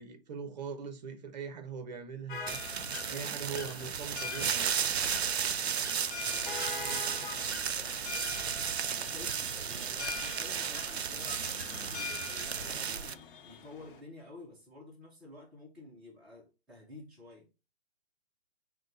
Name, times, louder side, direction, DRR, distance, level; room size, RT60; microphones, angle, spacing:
voice 1, 0.0-2.6 3.1-4.7, right 6 dB, 40° right, 0.8 m, -41 dB
sound 1, 2.3-14.0, left 5 dB, 55° left, 0.9 m, -48 dB
sound 2, 2.5-13.2, left 6 dB, 85° left, 0.7 m, -44 dB
sound 3, 2.5-13.1, right 8 dB, 75° right, 0.5 m, -34 dB
voice 2, 3.0-3.4 6.1-8.0 8.9-9.4 9.7-17.5, left 1 dB, ahead, 0.5 m, -51 dB
6.3 x 2.2 x 3.9 m
figure-of-eight pair, 130°, 32 cm